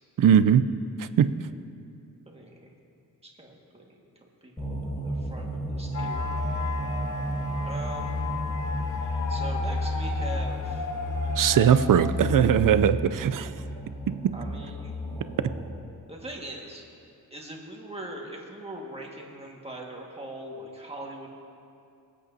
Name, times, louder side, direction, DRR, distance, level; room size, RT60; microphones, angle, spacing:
voice 1, 0.2-0.7 1.0-1.3 11.4-13.5 14.1-14.2, right 9 dB, 65° right, 13 dB, 0.5 m, -20 dB
voice 2, 2.2-2.7 3.2-4.0 4.4-6.2 7.6-8.2 9.3-10.9 14.3-14.9 16.1-16.8 17.3-21.3, right 1 dB, 15° right, -1 dB, 1.7 m, -41 dB
sound 1, 4.6-15.8, left 1 dB, 20° left, 1.9 m, -32 dB
sound 2, 5.9-12.1, left 3 dB, 55° left, 1.2 m, -35 dB
25.0 x 8.6 x 2.7 m, 2.6 s
wide cardioid pair, 115°, 36 cm